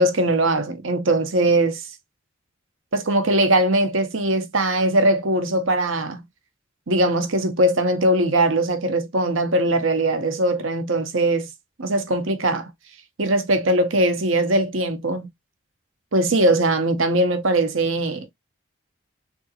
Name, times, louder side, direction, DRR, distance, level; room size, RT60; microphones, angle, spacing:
voice 1, 0.0-1.8 2.9-6.2 6.9-11.5 11.8-12.7 13.2-15.3 16.1-18.3, right 1 dB, 70° right, 0.9 m, -20 dB
3.8 x 3.5 x 2.8 m
head